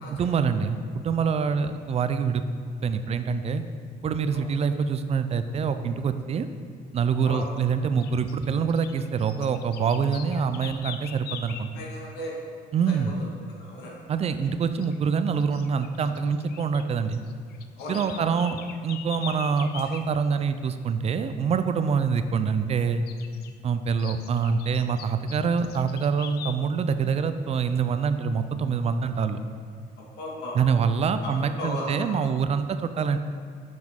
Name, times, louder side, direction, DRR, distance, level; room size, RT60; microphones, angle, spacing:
voice 1, 0.1-2.4 2.8-3.6 4.0-6.5 6.9-11.7 12.7-13.1 14.1-17.2 17.9-23.0 23.6-29.4 30.5-33.2, right 6 dB, 40° right, 10 dB, 0.4 m, -25 dB
sound 1, 7.4-7.6 8.0-11.7 14.3-14.6 14.8-15.0 15.4-16.8 17.1-20.1 23.1-23.5 24.0-26.6, left 8 dB, 70° left, 0.5 m, -42 dB
voice 2, 11.7-12.3 12.9-14.0 17.8-18.3 30.0-30.7 31.2-31.3 31.6-32.1, left 1 dB, 85° left, -3 dB, 1.8 m, -36 dB
7.1 x 6.0 x 3.7 m, 2.2 s
cardioid pair, 110°, 17 cm